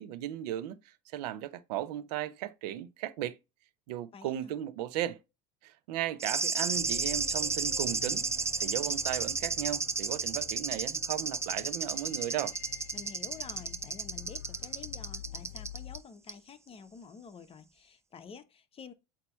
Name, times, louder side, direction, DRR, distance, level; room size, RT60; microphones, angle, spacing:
voice 1, 0.0-3.4 3.9-5.2 5.6-8.3 8.6-12.5, right 12 dB, 80° right, 0.8 m, -36 dB
voice 2, 4.1-4.5 12.9-18.9, left 6 dB, 30° left, 1.0 m, -49 dB
sound 1, 6.2-16.0 16.3-16.4, right 4 dB, 15° right, 0.5 m, -32 dB
sound 2, 6.7-16.0, left 13 dB, 50° left, 0.5 m, -48 dB
8.4 x 3.0 x 4.4 m
supercardioid pair, 110°, 20 cm